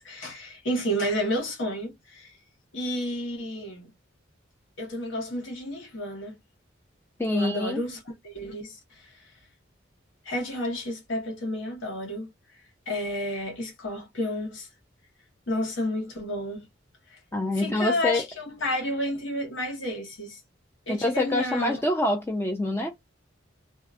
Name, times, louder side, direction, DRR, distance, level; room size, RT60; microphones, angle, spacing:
voice 1, 0.0-2.3 2.7-3.9 4.8-6.4 7.3-9.1 10.2-12.3 12.9-14.7 15.5-16.7 17.1-17.2 17.6-20.4 20.9-21.8, left 1 dB, 75° left, 1.1 m, -31 dB
voice 2, 7.2-7.8 17.3-18.2 20.9-22.9, left 1 dB, 10° left, 0.3 m, -26 dB
2.6 x 2.3 x 2.4 m
head